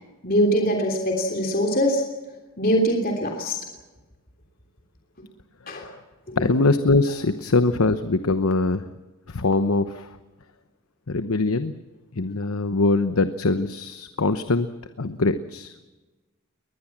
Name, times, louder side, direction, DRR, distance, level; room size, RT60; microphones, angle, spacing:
voice 1, 0.2-2.0 2.6-3.6 5.7-5.8, equal, 40° left, 1 dB, 3.2 m, -22 dB
voice 2, 6.4-8.9 9.3-10.1 11.1-11.7 12.2-14.7 15.0-15.7, left 3 dB, 80° left, 11 dB, 1.0 m, -22 dB
22.0 x 20.5 x 7.4 m, 1.2 s
head